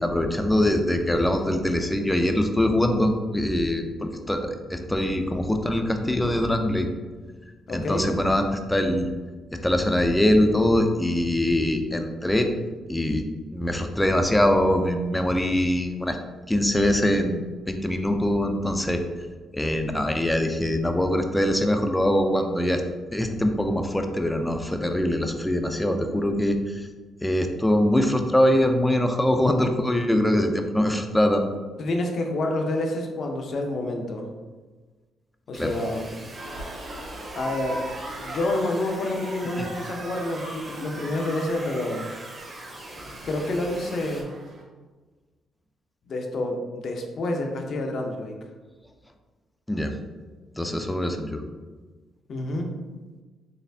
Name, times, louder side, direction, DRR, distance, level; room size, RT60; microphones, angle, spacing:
voice 1, 0.0-6.9 7.7-9.1 9.5-12.5 12.9-13.2 13.5-16.2 16.5-19.0 19.5-22.8 23.1-26.8 27.2-31.4 35.6-35.7 39.6-39.7 49.7-49.9 50.6-51.4, left 1 dB, 10° left, 5 dB, 0.4 m, -23 dB
voice 2, 7.7-8.1 31.8-34.3 35.5-36.1 37.3-37.8 38.2-42.1 43.3-44.3 46.1-48.4 52.3-52.7, left 1 dB, 55° left, 3 dB, 0.6 m, -28 dB
sound 1, 35.5-44.2, right 2 dB, 30° right, 0.9 m, -43 dB
sound 2, 36.3-44.6, right 1 dB, 65° right, 1.0 m, -39 dB
4.1 x 3.2 x 2.7 m, 1.3 s
cardioid pair, 90°, 0 cm